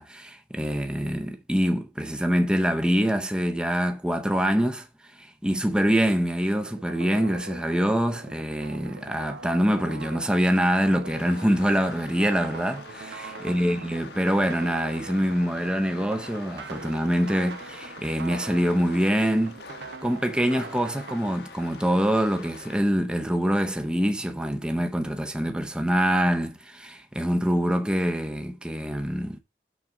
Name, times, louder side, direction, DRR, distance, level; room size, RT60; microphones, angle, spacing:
voice 1, 0.0-4.9 5.2-19.6 20.0-29.4, equal, 5° right, 0.6 m, -25 dB
sound 1, 6.4-21.2, right 4 dB, 85° right, 0.7 m, -42 dB
sound 2, 11.0-22.8, left 4 dB, 75° left, 1.1 m, -45 dB
6.3 x 4.8 x 5.9 m
head